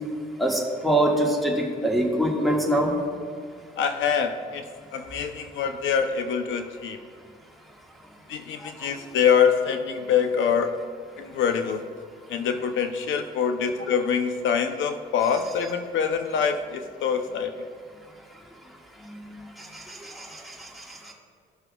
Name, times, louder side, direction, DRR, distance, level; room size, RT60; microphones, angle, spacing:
voice 1, 0.4-2.9 19.9-20.5, right 1 dB, ahead, -1 dB, 1.7 m, -24 dB
voice 2, 3.8-4.6 4.9-7.0 8.3-10.8 11.2-11.8 12.3-17.6, left 7 dB, 75° left, 7 dB, 0.6 m, -25 dB
16.5 x 6.0 x 2.3 m, 2.1 s
cardioid pair, 90°, 20 cm